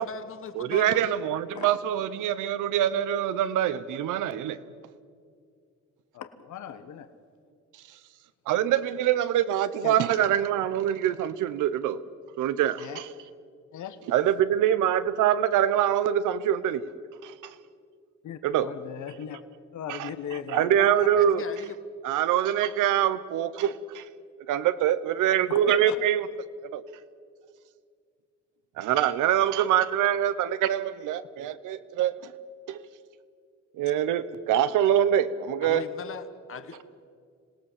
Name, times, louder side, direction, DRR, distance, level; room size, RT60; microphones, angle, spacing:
voice 1, 0.0-1.2 21.0-21.8 35.6-36.8, left 5 dB, 45° left, 1.3 m, -39 dB
voice 2, 0.6-4.6 8.5-12.0 12.4-13.1 14.1-16.8 17.2-17.3 18.4-18.7 19.9-20.1 20.5-21.4 22.0-24.0 24.5-26.3 26.7-26.8 28.8-32.3 32.7-32.8 33.8-35.8, right 10 dB, 90° right, 1.0 m, -24 dB
voice 3, 6.1-7.1 9.8-10.0 12.8-13.0 13.7-14.0 18.2-19.4 19.7-21.1 25.5-26.0, left 9 dB, 75° left, 1.3 m, -37 dB
26.5 x 18.0 x 7.4 m
cardioid pair, 90°, 30 cm